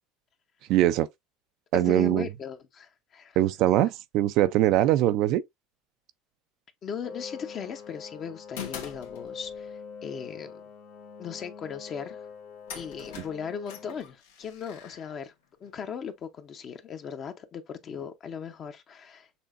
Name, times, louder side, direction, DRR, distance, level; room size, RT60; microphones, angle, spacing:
voice 1, 0.7-1.1 1.7-2.3 3.4-5.4, right 13 dB, 60° right, 0.5 m, -22 dB
voice 2, 1.7-3.4 6.8-10.6 11.2-12.3 12.7-15.3 15.6-19.4, left 7 dB, 40° left, 0.8 m, -38 dB
sound 1, 7.0-14.0, left 6 dB, 70° left, 1.9 m, -44 dB
sound 2, 7.5-7.9 8.6-9.7 12.1-12.2 12.7-15.7, left 7 dB, 85° left, 1.4 m, -44 dB
7.0 x 2.8 x 2.5 m
supercardioid pair, 105°, 0 cm